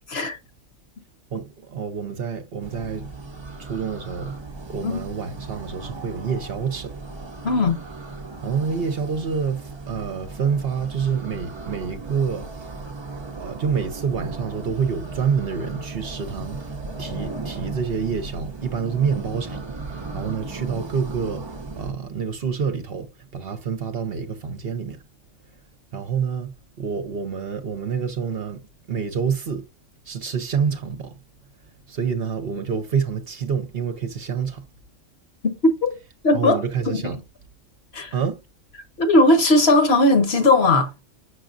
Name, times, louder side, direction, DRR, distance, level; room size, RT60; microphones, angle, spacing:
voice 1, 1.3-3.1 3.6-4.3 4.7-6.9 8.4-12.5 13.4-16.6 17.0-19.6 20.1-21.4 21.8-23.1 23.3-25.0 25.9-26.5 26.8-28.6 28.9-29.7 30.1-31.1 31.9-34.6 36.3-37.2 38.1-38.4, right 6 dB, 55° right, 0.9 m, -27 dB
sound 1, 2.6-21.9, right 3 dB, 30° right, 0.5 m, -36 dB
voice 2, 7.4-7.8 35.4-35.5 35.8-35.9 36.2-36.6 36.9-37.1 37.9-38.1 39.0-40.9, left 2 dB, 55° left, 1.3 m, -18 dB
6.4 x 6.0 x 2.5 m
omnidirectional pair, 1.3 m